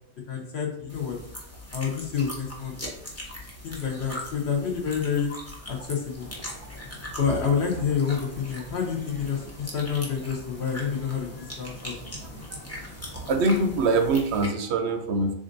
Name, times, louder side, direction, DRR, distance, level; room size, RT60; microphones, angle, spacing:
voice 1, 0.3-1.2 1.7-2.8 3.6-5.3 5.7-6.3 7.2-11.9, left 6 dB, 55° left, 1 dB, 0.9 m, -28 dB
sound 1, 0.9-14.5, left 1 dB, 15° left, 0.6 m, -41 dB
Wind / Ocean, 6.2-14.1, left 1 dB, 85° left, 1.5 m, -47 dB
voice 2, 13.1-15.3, right 3 dB, 65° right, 6 dB, 0.7 m, -24 dB
7.1 x 2.5 x 2.6 m, 0.73 s
omnidirectional pair, 1.4 m